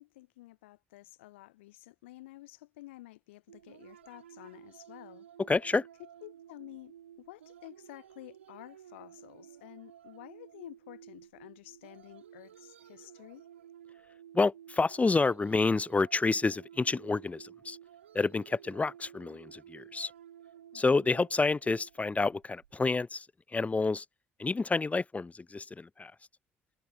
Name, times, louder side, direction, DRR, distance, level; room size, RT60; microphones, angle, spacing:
voice 1, 0.0-5.3 6.0-13.5 20.7-21.0, left 18 dB, 80° left, 3.5 m, -51 dB
sound 1, 3.5-23.0, right 10 dB, 85° right, 1.5 m, -54 dB
voice 2, 5.5-5.9 14.3-17.8 18.1-20.1 20.7-24.1 24.4-26.1, left 3 dB, 20° left, 0.5 m, -29 dB
figure-of-eight pair, 45°, 6 cm